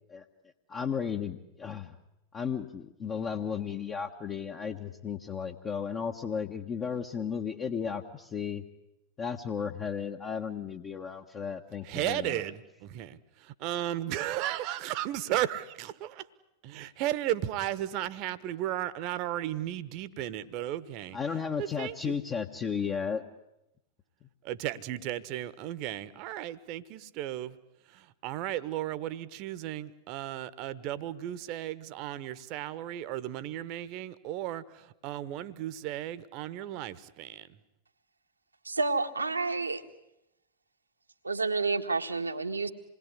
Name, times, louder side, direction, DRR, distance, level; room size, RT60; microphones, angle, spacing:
voice 1, 0.7-2.0 2.3-8.6 9.2-12.4 21.1-23.2, left 6 dB, 25° left, 1.4 m, -34 dB
voice 2, 11.8-16.3 16.6-21.2 21.6-22.2 24.4-27.5 27.9-37.5, right 13 dB, 40° right, 1.2 m, -35 dB
voice 3, 38.7-39.8 41.2-42.7, right 3 dB, 80° right, 1.6 m, -29 dB
27.5 x 20.5 x 9.8 m
figure-of-eight pair, 90°, 0 cm